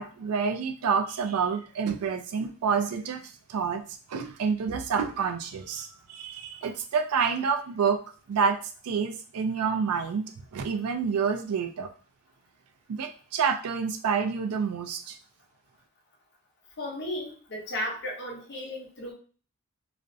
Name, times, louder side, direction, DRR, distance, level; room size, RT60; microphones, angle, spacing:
voice 1, 0.0-3.2 3.5-3.8 4.1-8.0 8.3-8.6 8.8-11.9 12.9-15.2, right 6 dB, 85° right, 5 dB, 0.4 m, -28 dB
voice 2, 16.8-19.1, left 1 dB, 50° left, -1 dB, 0.7 m, -35 dB
2.5 x 2.0 x 2.5 m, 0.38 s
head